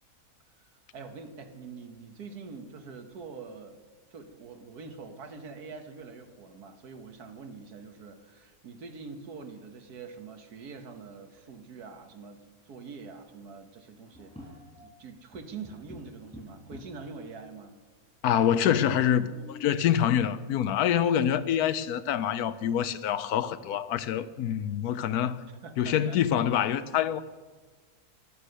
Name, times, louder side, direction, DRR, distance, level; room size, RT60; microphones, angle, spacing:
voice 1, 0.9-3.8 4.1-14.5 14.8-17.8 25.5-26.2, right 4 dB, 75° right, 1.8 m, -44 dB
sound 1, 14.1-15.0 15.3-17.1 17.9-18.0 18.1-18.2 18.9-19.9 21.6-21.7 22.2-22.7 23.1-23.2 23.7-24.6, left 2 dB, 5° left, 5.2 m, -50 dB
voice 2, 18.2-25.4 25.8-27.2, left 9 dB, 80° left, 1.1 m, -26 dB
13.5 x 11.5 x 6.6 m
omnidirectional pair, 1.7 m